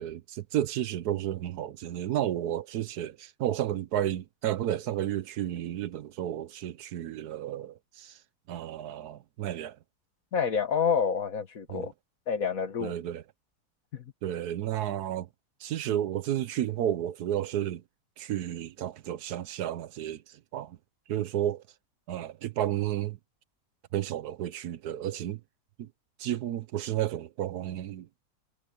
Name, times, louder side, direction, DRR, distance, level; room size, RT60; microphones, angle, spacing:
voice 1, 0.0-8.2 8.5-9.8 11.7-11.9 12.8-13.2 14.2-15.3 15.6-17.8 18.2-20.8 21.1-21.6 22.1-23.2 23.9-25.4 25.8-25.9 26.2-28.1, right 11 dB, 75° right, 1.2 m, -32 dB
voice 2, 10.3-11.9 12.3-12.9 13.9-14.1, left 6 dB, 60° left, 1.9 m, -28 dB
omnidirectional pair, 1.7 m